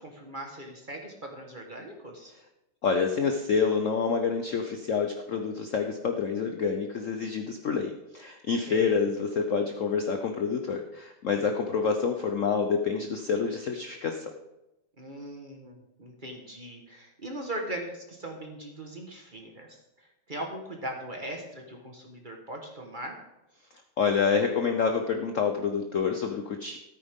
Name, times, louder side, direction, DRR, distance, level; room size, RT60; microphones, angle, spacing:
voice 1, 0.0-2.3 8.6-9.0 15.0-23.2, right 1 dB, 25° right, 1 dB, 1.3 m, -40 dB
voice 2, 2.8-14.3 24.0-26.8, left 5 dB, 80° left, 4 dB, 0.7 m, -27 dB
14.0 x 8.9 x 3.6 m, 0.95 s
omnidirectional pair, 2.4 m